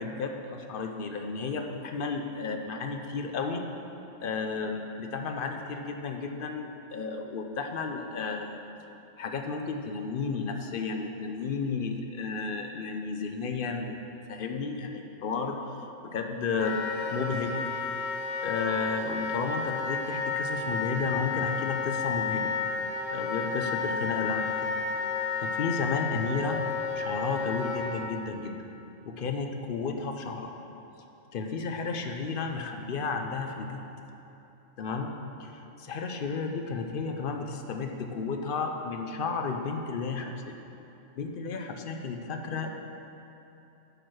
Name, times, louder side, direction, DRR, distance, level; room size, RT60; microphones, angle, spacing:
voice 1, 0.0-3.6 4.2-8.6 9.2-14.0 14.3-15.6 16.0-16.8 17.1-17.6 18.4-22.5 23.1-24.8 25.4-26.6 27.0-28.6 29.1-30.5 31.3-33.8 34.8-35.1 35.4-40.6 41.2-42.8, left 4 dB, 55° left, 4 dB, 0.7 m, -33 dB
Wind instrument woodwind instrument, 16.6-28.0, left 5 dB, 75° left, 1.1 m, -31 dB
9.8 x 4.6 x 6.2 m, 2.9 s
omnidirectional pair, 1.4 m